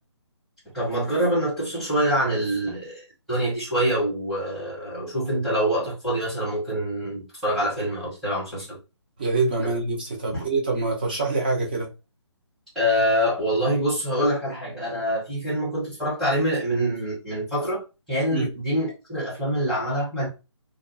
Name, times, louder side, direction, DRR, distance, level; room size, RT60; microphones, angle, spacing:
voice 1, 0.7-8.8 9.6-9.7 10.3-10.4 12.7-17.8 18.1-20.3, equal, ahead, 0.8 m, -25 dB
voice 2, 9.2-11.9 18.3-18.5, right 3 dB, 20° right, 0.4 m, -25 dB
2.4 x 2.2 x 2.4 m
hypercardioid pair, 165°, 15 cm